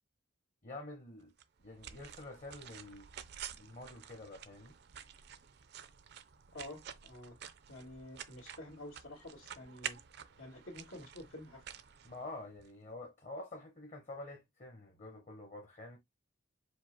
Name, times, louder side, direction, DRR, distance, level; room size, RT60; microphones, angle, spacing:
voice 1, 0.6-1.3 1.6-3.1 3.6-4.7 12.1-16.0, left 2 dB, 35° left, 0.8 m, -48 dB
sound 1, 1.4-12.7, right 9 dB, 50° right, 0.5 m, -50 dB
voice 2, 6.5-7.3 7.7-10.0 10.4-11.7, left 1 dB, 85° left, 1.8 m, -49 dB
5.0 x 2.0 x 4.4 m
head